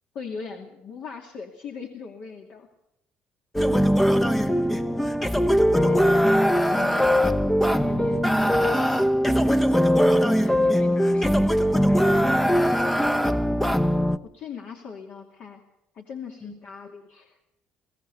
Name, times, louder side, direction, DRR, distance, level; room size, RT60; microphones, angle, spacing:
voice 1, 0.1-2.7 14.2-15.6 15.9-17.4, left 6 dB, 60° left, 1 dB, 2.6 m, -39 dB
sound 1, 3.6-14.2, equal, 5° left, 0.8 m, -21 dB
voice 2, 4.1-5.1 5.5-6.4 6.7-7.2 7.6-12.5 16.4-16.5, left 2 dB, 35° left, 7 dB, 7.4 m, -42 dB
22.5 x 16.5 x 7.0 m, 0.83 s
cardioid pair, 125°, 3 cm